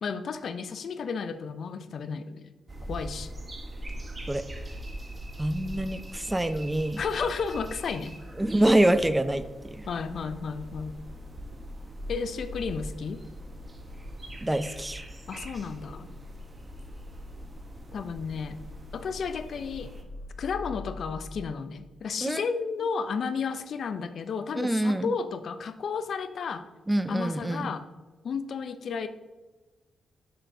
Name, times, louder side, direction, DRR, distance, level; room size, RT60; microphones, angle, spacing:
voice 1, 0.0-2.5 2.9-3.3 7.0-8.2 9.9-11.0 12.1-13.3 15.3-16.1 17.9-18.6 18.9-19.9 20.4-26.7 27.1-27.9 28.2-29.1, left 5 dB, 65° left, 11 dB, 0.4 m, -32 dB
sound 1, 2.7-20.0, right 1 dB, 30° right, 0.9 m, -42 dB
voice 2, 5.4-7.0 8.4-9.8 14.4-15.0 22.2-22.4 24.6-25.1 26.9-27.7, right 1 dB, 15° right, 12 dB, 0.4 m, -25 dB
sound 2, 10.5-21.4, left 2 dB, 85° left, 1.3 m, -45 dB
6.6 x 6.0 x 2.6 m, 1.2 s
supercardioid pair, 55°, 0 cm